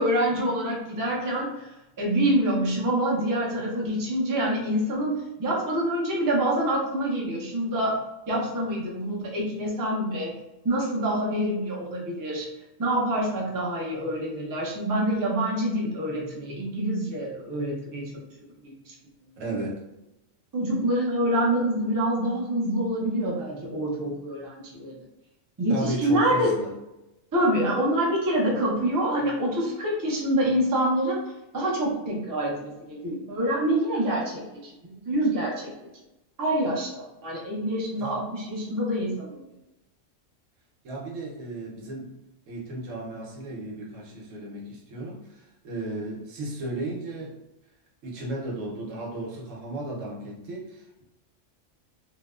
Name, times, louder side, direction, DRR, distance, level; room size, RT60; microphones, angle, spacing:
voice 1, 0.0-8.0 8.3-10.3 10.6-12.5 12.8-18.1 18.6-18.9 20.5-25.0 25.6-26.5 27.3-31.2 31.5-35.7 36.4-39.5, right 1 dB, 35° right, -4 dB, 0.3 m, -26 dB
voice 2, 19.4-19.8 25.7-26.8 38.0-38.2 40.8-42.1 42.5-47.4 48.0-51.0, right 2 dB, 80° right, -2 dB, 1.0 m, -35 dB
2.8 x 2.0 x 2.3 m, 0.95 s
omnidirectional pair, 1.3 m